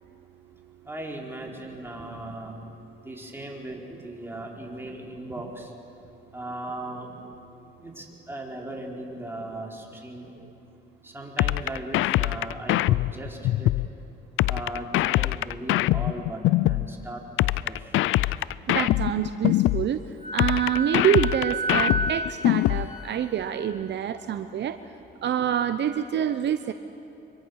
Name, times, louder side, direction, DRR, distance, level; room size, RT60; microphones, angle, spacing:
voice 1, 0.8-2.6 3.0-5.7 6.3-7.1 7.8-10.3 11.0-13.7 14.5-17.2 17.6-17.9, right 1 dB, 10° right, -1 dB, 4.3 m, -38 dB
sound 1, 11.4-13.9 14.4-16.9 17.4-19.9 20.4-22.9, left 16 dB, 85° left, 0.4 m, -23 dB
voice 2, 18.7-20.0 20.3-24.8 25.2-26.7, right 9 dB, 60° right, 10 dB, 0.8 m, -26 dB
Wind instrument woodwind instrument, 20.2-23.7, right 2 dB, 35° left, 7.1 m, -31 dB
25.0 x 23.5 x 6.5 m, 2.8 s
cardioid pair, 90°, 20 cm